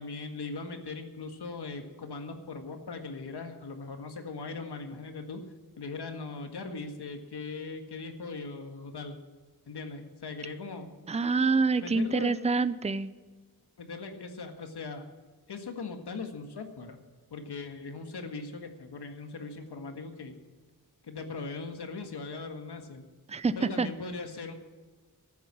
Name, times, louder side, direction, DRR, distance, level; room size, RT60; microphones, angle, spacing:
voice 1, 0.0-5.4 5.8-9.2 9.7-10.9 11.8-12.4 13.8-15.0 15.5-17.0 17.3-20.3 21.0-23.0 23.6-24.5, left 4 dB, 85° left, 5 dB, 1.8 m, -39 dB
voice 2, 11.1-13.1 23.3-23.9, right 4 dB, 15° right, 14 dB, 0.5 m, -26 dB
13.5 x 9.3 x 7.6 m, 1.4 s
wide cardioid pair, 140°, 39 cm